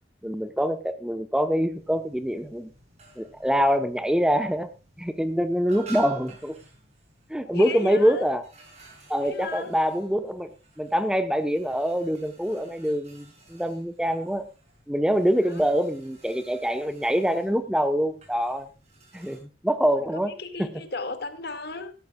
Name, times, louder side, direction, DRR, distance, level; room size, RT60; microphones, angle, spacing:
voice 1, 0.2-2.7 3.2-4.7 5.0-6.6 7.3-8.4 9.1-14.5 14.9-18.7 19.1-20.3 20.6-20.7, equal, 5° right, 9 dB, 1.0 m, -25 dB
sound 1, 1.6-19.4, right 5 dB, 40° right, 6.8 m, -51 dB
voice 2, 7.4-8.3 9.2-9.7 15.7-15.8 20.1-21.9, left 3 dB, 65° left, 9 dB, 2.1 m, -35 dB
18.0 x 14.0 x 2.4 m, 0.30 s
head